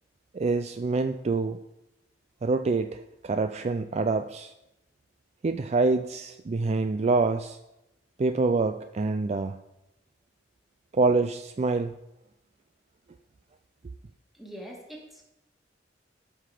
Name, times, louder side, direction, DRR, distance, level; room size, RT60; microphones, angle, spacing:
voice 1, 0.3-1.6 2.4-4.5 5.4-7.6 8.2-9.6 10.9-11.9, right 3 dB, 35° right, 9 dB, 0.4 m, -26 dB
voice 2, 14.3-15.2, equal, ahead, -1 dB, 2.0 m, -43 dB
14.5 x 5.8 x 4.9 m, 0.90 s
head